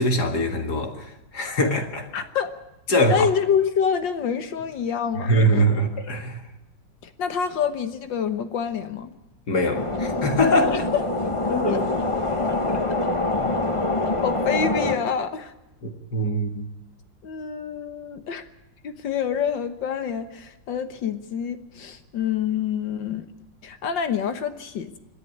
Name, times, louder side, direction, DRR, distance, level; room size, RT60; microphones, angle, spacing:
voice 1, 0.0-2.1 2.9-3.3 5.3-6.4 9.5-10.8 11.5-12.0 13.4-13.5 15.8-16.7, equal, 60° left, 2.4 m, -23 dB
voice 2, 2.1-2.5 3.1-5.4 7.0-9.1 10.7-11.0 11.7-11.8 14.2-15.5 17.2-18.4 18.8-23.3 23.6-25.0, left 7 dB, 75° left, 1.8 m, -27 dB
sound 1, 9.7-15.0, left 2 dB, 20° left, 1.4 m, -25 dB
26.0 x 11.0 x 9.6 m
omnidirectional pair, 2.0 m